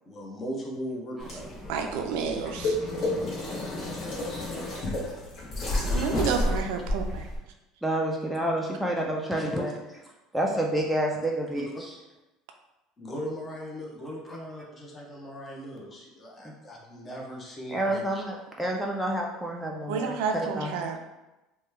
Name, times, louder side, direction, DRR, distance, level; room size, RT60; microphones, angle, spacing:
voice 1, 0.0-1.9 2.2-2.4 3.1-5.1 5.6-6.2 9.3-9.7 11.5-11.6 13.0-18.0, equal, 25° left, -1 dB, 0.7 m, -39 dB
sound 1, 1.2-7.4, left 1 dB, 45° left, 1.0 m, -31 dB
voice 2, 1.7-2.8 3.0-3.1 5.9-7.3 19.9-21.0, right 5 dB, 85° right, 4 dB, 0.4 m, -30 dB
voice 3, 7.8-9.7 10.3-11.9 14.3-14.4 17.7-20.7, right 1 dB, ahead, -2 dB, 0.3 m, -29 dB
3.0 x 2.2 x 3.3 m, 0.99 s
cardioid pair, 140°, 0 cm